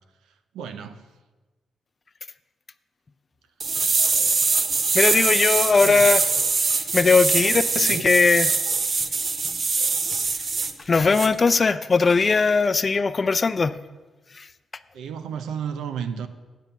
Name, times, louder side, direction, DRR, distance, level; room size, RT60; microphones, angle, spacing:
voice 1, 0.5-1.0 5.8-6.1 7.8-8.0 14.9-16.3, right 7 dB, 90° right, 10 dB, 0.7 m, -32 dB
sound 1, 3.6-10.7 11.1-11.3, right 4 dB, 45° right, 0.8 m, -23 dB
voice 2, 4.9-6.2 6.9-8.5 10.9-13.8 14.4-14.5, left 4 dB, 40° left, 14 dB, 0.5 m, -19 dB
9.2 x 7.4 x 6.7 m, 1.2 s
cardioid pair, 75°, 0 cm